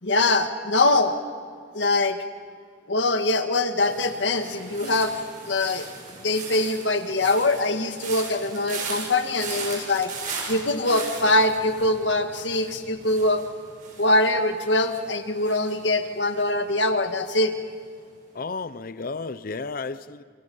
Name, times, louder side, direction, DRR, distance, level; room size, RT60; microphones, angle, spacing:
voice 1, 0.0-1.2 1.7-2.2 2.9-5.2 5.5-5.9 6.2-10.1 10.5-13.4 14.0-17.5, left 2 dB, 80° left, 6 dB, 1.9 m, -23 dB
sound 1, 3.8-16.8 17.1-17.5, right 4 dB, 45° right, 6.8 m, -38 dB
voice 2, 18.3-20.2, left 4 dB, 50° left, 14 dB, 0.7 m, -32 dB
29.5 x 27.5 x 5.6 m, 2.1 s
head